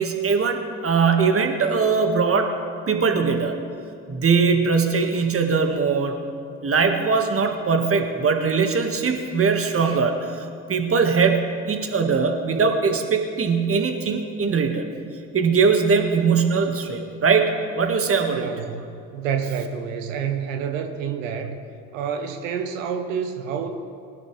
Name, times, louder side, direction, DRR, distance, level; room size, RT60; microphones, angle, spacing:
voice 1, 0.0-2.5 2.9-3.6 4.1-6.2 6.6-14.8 15.3-17.5 17.8-18.5, right 5 dB, 35° right, 5 dB, 1.7 m, -21 dB
voice 2, 18.3-21.6 21.9-23.7, right 7 dB, 85° right, 6 dB, 1.0 m, -28 dB
19.5 x 11.0 x 3.3 m, 2.5 s
hypercardioid pair, 60°, 38 cm